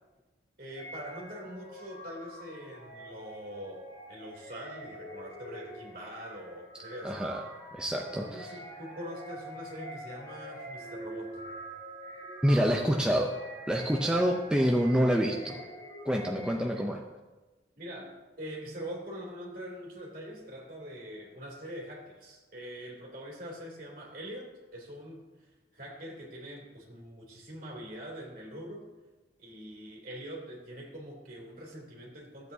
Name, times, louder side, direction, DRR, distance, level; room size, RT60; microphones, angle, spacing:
voice 1, 0.6-7.3 8.2-11.4 16.7-16.9 17.8-25.5 25.7-28.9 29.4-32.5, equal, 50° right, -2 dB, 2.7 m, -43 dB
sound 1, 0.7-16.9, right 1 dB, 55° left, 3.2 m, -45 dB
voice 2, 7.0-8.5 12.4-13.4 13.7-15.6 16.0-17.0, equal, 5° right, 1 dB, 0.5 m, -27 dB
14.5 x 8.1 x 2.7 m, 1.2 s
head